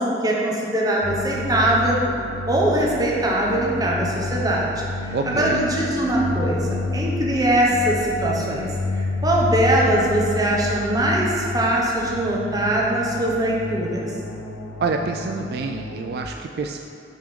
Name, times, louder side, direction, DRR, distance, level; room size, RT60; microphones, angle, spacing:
voice 1, 0.0-2.0 2.5-8.7 8.9-14.0, right 1 dB, 20° right, -3 dB, 1.0 m, -22 dB
sound 1, 1.0-16.3, left 3 dB, 85° left, 0.5 m, -30 dB
voice 2, 5.1-5.6 14.8-16.8, right 4 dB, 60° right, 4 dB, 0.3 m, -27 dB
7.5 x 3.7 x 5.1 m, 2.7 s
head